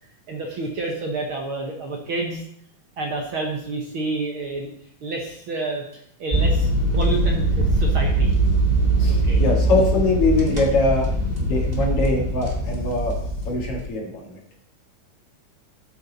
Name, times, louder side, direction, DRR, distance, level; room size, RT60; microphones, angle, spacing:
voice 1, 0.3-2.4 3.0-4.7 5.0-6.7 6.9-8.3 9.1-9.4 11.7-11.8, right 3 dB, 55° right, 1 dB, 1.7 m, -29 dB
sound 1, 6.3-13.8, right 1 dB, 20° right, 1.4 m, -21 dB
voice 2, 9.0-11.1 11.4-13.2 13.4-14.4, left 2 dB, 55° left, -1 dB, 2.7 m, -23 dB
12.5 x 8.1 x 4.0 m, 0.69 s
omnidirectional pair, 3.3 m